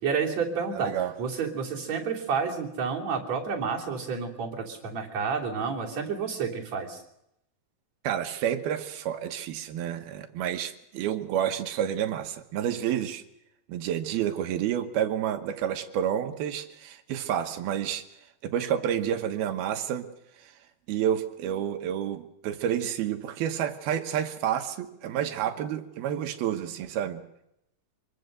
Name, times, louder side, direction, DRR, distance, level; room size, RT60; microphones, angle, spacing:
voice 1, 0.0-0.9 1.2-7.0, right 5 dB, 40° right, -2 dB, 4.1 m, -30 dB
voice 2, 0.7-1.1 8.0-13.2 13.7-18.0 18.4-20.1 20.4-20.5 20.9-27.2, right 10 dB, 70° right, 7 dB, 2.8 m, -29 dB
25.0 x 22.5 x 6.7 m, 0.82 s
omnidirectional pair, 5.2 m